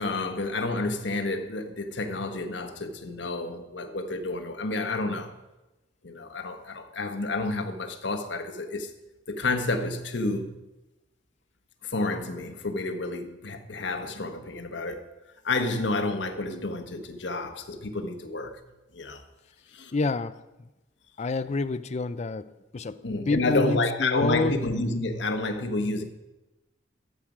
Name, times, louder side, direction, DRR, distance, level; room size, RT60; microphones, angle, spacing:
voice 1, 0.0-5.3 6.0-8.9 9.3-10.5 11.8-15.0 15.4-18.6 18.9-19.2 19.7-19.9 23.0-26.0, left 2 dB, 75° left, 1.1 m, -30 dB
voice 2, 19.9-20.4 21.2-22.5 22.7-23.0 23.3-24.6, left 3 dB, 40° left, 0.4 m, -27 dB
13.0 x 7.5 x 4.9 m
head